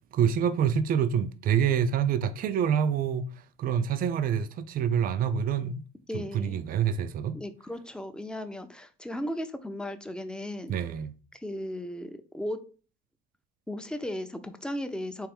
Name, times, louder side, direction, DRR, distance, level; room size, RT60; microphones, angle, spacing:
voice 1, 0.1-3.3 3.6-5.8 6.1-7.4 10.7-11.1, right 8 dB, 50° right, 0.5 m, -26 dB
voice 2, 6.1-6.6 7.3-10.8 11.3-12.7 13.7-15.3, left 1 dB, 5° left, 0.5 m, -36 dB
4.6 x 3.1 x 3.4 m
cardioid pair, 110°, 19 cm